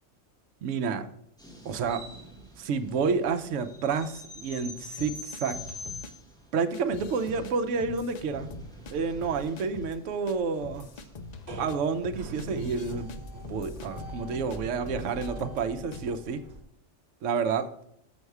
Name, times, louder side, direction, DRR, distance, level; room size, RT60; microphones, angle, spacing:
voice 1, 0.6-1.1 1.6-2.0 2.6-5.6 6.5-8.5 8.9-10.9 11.6-13.1 13.5-16.4 17.2-17.7, right 5 dB, 75° right, 9 dB, 1.0 m, -29 dB
sound 1, 1.4-15.5, left 1 dB, 5° left, 1.2 m, -47 dB
sound 2, 5.0-6.1 6.7-7.5 7.8-8.9 9.2-10.0 10.3-10.4 10.6-14.6 14.9-15.6 15.9-16.1, left 3 dB, 55° left, 0.5 m, -43 dB
sound 3, 8.2-16.6, right 1 dB, 55° right, 1.4 m, -43 dB
6.6 x 6.3 x 4.7 m, 0.74 s
omnidirectional pair, 1.3 m